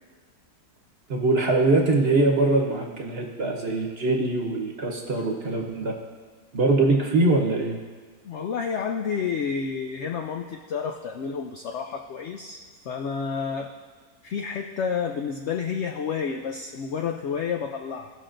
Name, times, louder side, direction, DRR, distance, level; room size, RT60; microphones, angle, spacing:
voice 1, 1.1-5.9 6.5-7.8, right 2 dB, 45° right, 0 dB, 1.1 m, -22 dB
voice 2, 8.2-13.7 14.2-18.1, left 6 dB, 80° left, 4 dB, 0.6 m, -30 dB
17.0 x 6.0 x 2.5 m, 1.5 s
omnidirectional pair, 1.7 m